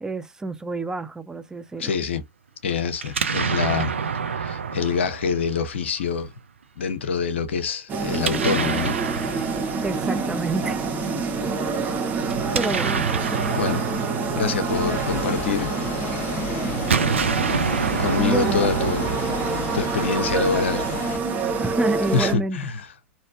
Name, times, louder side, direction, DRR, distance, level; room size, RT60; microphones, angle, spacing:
voice 1, 0.0-1.9 9.8-10.8 12.5-13.1 18.2-18.7 21.6-22.6, right 3 dB, 10° right, 0.4 m, -28 dB
voice 2, 1.8-2.2 2.6-3.9 4.4-6.3 6.8-9.0 13.5-13.9 14.3-15.7 18.0-19.1 19.7-20.8 22.1-22.8, left 6 dB, 65° left, 0.7 m, -25 dB
Explosion, 3.0-6.0 8.1-10.3 12.2-15.7 16.7-20.1, right 6 dB, 75° right, 0.5 m, -28 dB
sound 1, 7.9-22.3, right 4 dB, 25° right, 1.0 m, -27 dB
sound 2, 14.7-21.2, left 5 dB, 40° left, 1.0 m, -33 dB
3.3 x 2.6 x 2.4 m
figure-of-eight pair, 90°, 7 cm